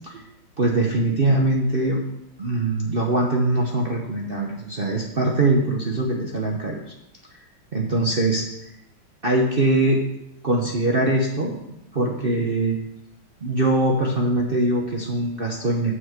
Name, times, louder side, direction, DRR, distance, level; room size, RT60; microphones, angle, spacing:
voice 1, 0.6-2.0 2.4-6.8 7.7-8.4 9.2-10.0 10.4-11.5 11.9-12.8 13.4-15.9, right 2 dB, 45° right, -1 dB, 0.7 m, -22 dB
7.4 x 6.2 x 6.6 m, 0.87 s
omnidirectional pair, 2.2 m